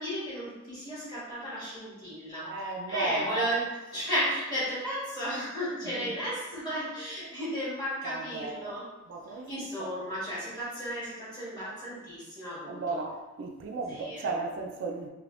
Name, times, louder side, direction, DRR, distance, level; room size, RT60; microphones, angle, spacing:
voice 1, 0.0-8.9 9.3-13.0 13.9-14.4, equal, 20° left, -9 dB, 1.4 m, -34 dB
voice 2, 2.4-3.5 5.8-6.2 7.2-7.3 8.0-8.8 9.1-10.1 12.7-15.1, right 3 dB, 60° right, 2 dB, 0.4 m, -35 dB
3.3 x 2.8 x 2.5 m, 1.1 s
head